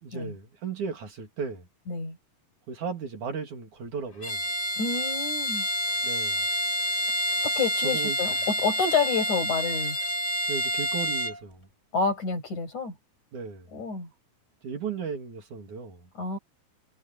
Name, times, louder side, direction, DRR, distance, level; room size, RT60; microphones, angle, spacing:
voice 1, 0.0-1.7 2.7-4.4 6.0-6.5 7.8-8.2 10.5-11.7 13.3-13.7 14.6-16.1, right 5 dB, 60° right, 4.0 m, -35 dB
Bowed string instrument, 4.2-11.4, equal, 20° left, 4.5 m, -28 dB
voice 2, 4.8-5.7 7.4-10.0 11.9-13.0 13.7-14.1 16.1-16.4, left 5 dB, 55° left, 7.9 m, -28 dB
omnidirectional pair, 4.0 m